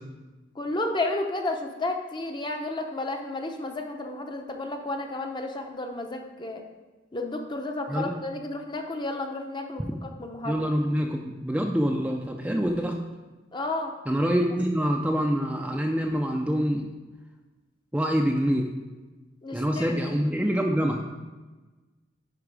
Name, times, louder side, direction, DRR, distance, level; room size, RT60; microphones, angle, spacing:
voice 1, 0.6-6.6 7.1-10.6 13.5-13.9 19.4-19.9, left 2 dB, 25° left, 4 dB, 0.8 m, -32 dB
voice 2, 10.4-13.0 14.1-16.9 17.9-18.7 19.5-21.0, equal, 5° right, 1 dB, 0.5 m, -25 dB
9.9 x 4.7 x 4.8 m, 1.2 s
head